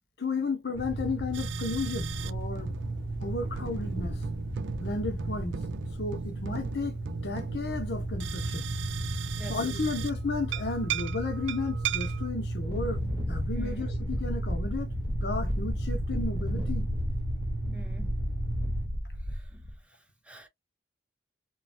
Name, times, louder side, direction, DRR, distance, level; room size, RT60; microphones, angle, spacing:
voice 1, 0.2-2.7 3.2-4.2 4.8-5.7 6.0-7.0 7.2-8.7 9.5-13.0 13.3-14.9 15.2-16.9, left 3 dB, 65° left, 0.7 m, -33 dB
sound 1, 0.7-18.9, right 2 dB, 70° right, 0.9 m, -35 dB
sound 2, 1.3-2.3 2.6-10.1 10.5-12.3, right 9 dB, 85° right, 0.3 m, -38 dB
voice 2, 9.1-9.6 13.6-13.8 17.6-18.1 18.6-18.8 19.3-20.5, right 1 dB, 5° right, 0.4 m, -47 dB
Wind, 12.6-19.7, left 1 dB, 25° right, 1.0 m, -33 dB
3.0 x 2.1 x 2.5 m
head